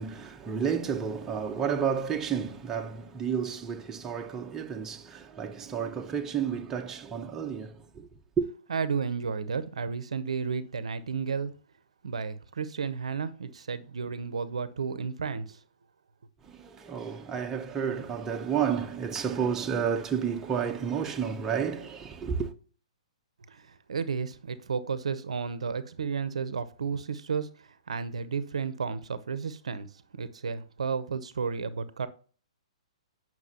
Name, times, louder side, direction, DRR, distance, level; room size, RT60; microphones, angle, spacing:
voice 1, 0.0-8.1 8.4-8.5 16.4-22.5, right 7 dB, 15° right, 0.8 m, -31 dB
voice 2, 8.7-11.5 12.0-15.6 23.5-29.9 30.1-32.1, right 5 dB, 70° right, 0.7 m, -32 dB
9.1 x 6.0 x 2.9 m
figure-of-eight pair, 125°, 3 cm